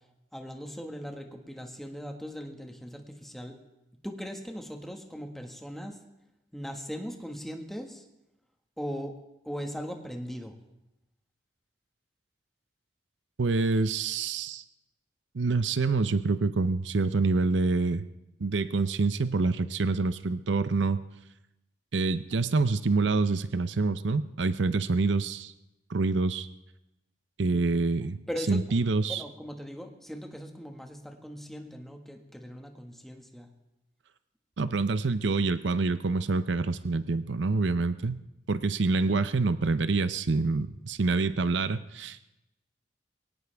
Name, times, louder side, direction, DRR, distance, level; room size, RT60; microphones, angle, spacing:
voice 1, 0.3-3.6 4.0-6.0 6.5-8.0 8.8-9.1 9.4-10.6 28.3-28.6 29.1-33.5, equal, ahead, 3 dB, 1.7 m, -39 dB
voice 2, 13.4-14.6 15.3-18.1 18.4-21.0 21.9-25.5 25.9-26.5 27.4-28.2 28.5-29.2 34.6-38.2 38.5-42.2, right 3 dB, 80° right, 13 dB, 0.7 m, -26 dB
22.5 x 17.5 x 3.5 m, 0.92 s
head